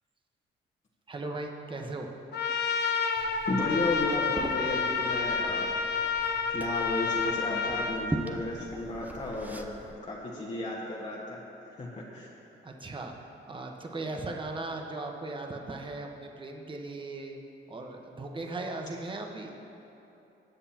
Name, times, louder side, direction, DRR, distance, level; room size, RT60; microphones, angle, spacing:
voice 1, 1.1-2.1 12.6-13.1 13.5-17.4 17.7-19.6, right 2 dB, 25° right, 2 dB, 1.2 m, -38 dB
Trumpet, 2.3-8.0, left 5 dB, 55° left, 0.8 m, -29 dB
Liquid, 3.2-9.9, right 1 dB, 10° right, 0.8 m, -41 dB
voice 2, 3.5-5.7 6.5-9.7 10.0-11.4 11.8-12.3, left 2 dB, 35° left, -6 dB, 1.6 m, -33 dB
21.0 x 8.1 x 2.9 m, 3.0 s
cardioid pair, 90°, 20 cm